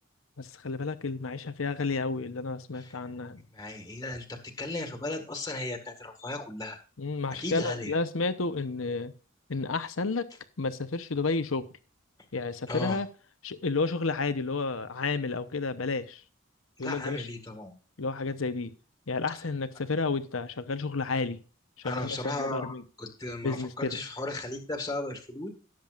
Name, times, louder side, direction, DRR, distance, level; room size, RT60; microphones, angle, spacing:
voice 1, 0.4-3.4 7.0-9.1 9.5-10.2 10.6-11.6 12.3-13.1 13.4-16.2 16.8-17.3 18.0-18.7 19.1-21.4 21.8-22.8 23.4-24.0, left 3 dB, 90° left, 11 dB, 0.9 m, -31 dB
voice 2, 3.5-6.8 7.3-7.9 12.7-13.0 16.8-17.7 21.8-25.5, left 2 dB, 15° left, 4 dB, 1.8 m, -36 dB
18.0 x 7.5 x 2.5 m, 0.36 s
head